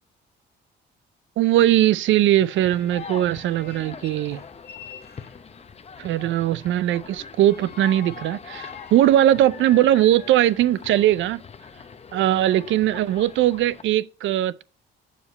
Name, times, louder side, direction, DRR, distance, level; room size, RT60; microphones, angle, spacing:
voice 1, 1.4-4.4 6.0-11.4 12.1-14.6, right 13 dB, 75° right, 0.4 m, -20 dB
sound 1, 2.3-5.8 7.3-11.0, left 7 dB, 55° left, 1.8 m, -45 dB
sound 2, 2.5-13.8, left 6 dB, 30° left, 0.7 m, -43 dB
7.1 x 5.0 x 4.0 m
cardioid pair, 90°, 20 cm